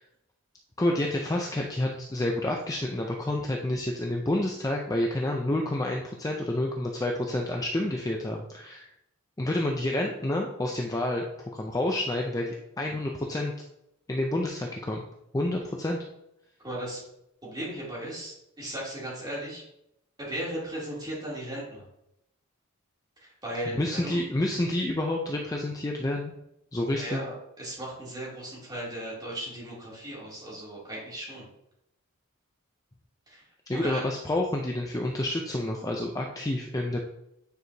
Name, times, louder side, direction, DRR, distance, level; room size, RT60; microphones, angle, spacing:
voice 1, 0.8-8.9 9.4-13.5 14.1-15.0 15.3-16.0 23.7-26.3 26.7-27.2 33.7-37.1, left 1 dB, 15° left, 0 dB, 0.5 m, -29 dB
voice 2, 16.6-17.0 17.4-19.6 20.2-21.9 23.2-24.2 26.9-31.5 33.3-33.4 33.7-34.0, right 1 dB, 20° right, -6 dB, 2.7 m, -36 dB
9.1 x 4.7 x 2.7 m, 0.81 s
head